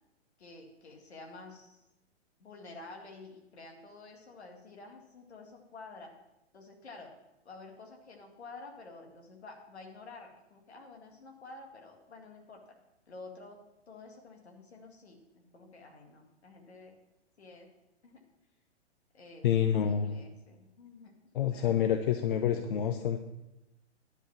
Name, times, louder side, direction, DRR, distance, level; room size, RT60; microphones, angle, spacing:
voice 1, 0.4-1.8 2.4-6.1 6.5-7.1 7.4-12.6 13.1-13.6 13.9-17.0 17.4-17.7 18.0-18.2 19.1-21.1 21.5-21.8, left 3 dB, 70° left, 2 dB, 2.2 m, -50 dB
voice 2, 19.4-20.1 21.3-23.2, left 9 dB, 50° left, 7 dB, 0.7 m, -28 dB
10.5 x 5.4 x 7.1 m, 0.94 s
figure-of-eight pair, 115°, 34 cm